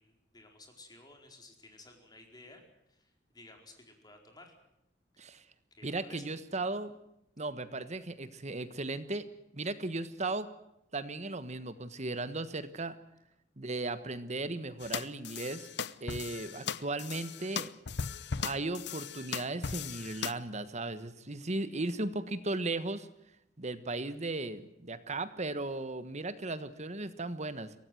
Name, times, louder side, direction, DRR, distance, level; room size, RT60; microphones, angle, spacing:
voice 1, 0.0-2.6 2.9-4.5 5.1-5.3 5.7-6.3, left 2 dB, 20° left, 3 dB, 4.6 m, -55 dB
voice 2, 5.8-7.0 7.4-9.3 9.5-10.5 10.9-12.9 13.6-15.7 16.0-17.7 18.4-23.1 23.6-27.7, right 2 dB, 40° right, 12 dB, 1.4 m, -36 dB
sound 1, 14.8-20.3, left 6 dB, 65° left, 0.8 m, -38 dB
24.0 x 18.0 x 7.8 m, 0.82 s
head